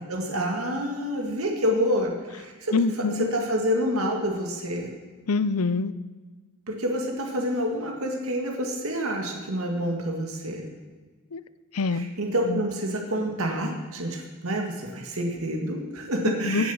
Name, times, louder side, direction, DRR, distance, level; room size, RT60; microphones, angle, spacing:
voice 1, 0.1-2.7 3.1-4.9 6.7-10.7 11.9-16.7, equal, 70° right, 1 dB, 2.0 m, -28 dB
voice 2, 2.7-3.3 5.3-5.9 11.3-11.4 11.7-12.1 12.4-12.6 16.3-16.7, left 4 dB, 85° left, 15 dB, 0.6 m, -25 dB
17.0 x 7.9 x 7.1 m, 1.4 s
head